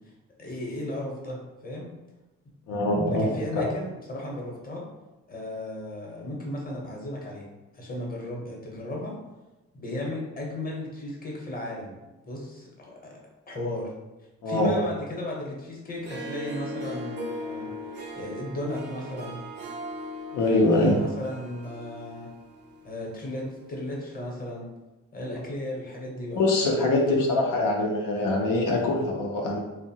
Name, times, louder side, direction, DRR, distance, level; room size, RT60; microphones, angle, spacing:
voice 1, 0.4-1.4 1.6-1.9 3.1-4.8 5.3-7.5 7.7-9.1 9.7-12.0 12.3-13.2 13.5-13.9 14.5-17.7 18.1-19.4 20.7-22.3 22.8-24.7 25.1-26.4 26.9-27.3, left 1 dB, 30° left, -2 dB, 0.8 m, -35 dB
voice 2, 2.7-3.7 14.4-14.8 20.3-21.0 26.4-29.6, left 2 dB, 90° left, -1 dB, 0.5 m, -23 dB
Harp, 15.9-23.3, equal, 35° right, 0.4 m, -39 dB
2.7 x 2.1 x 2.7 m, 1.1 s
cardioid pair, 90°, 30 cm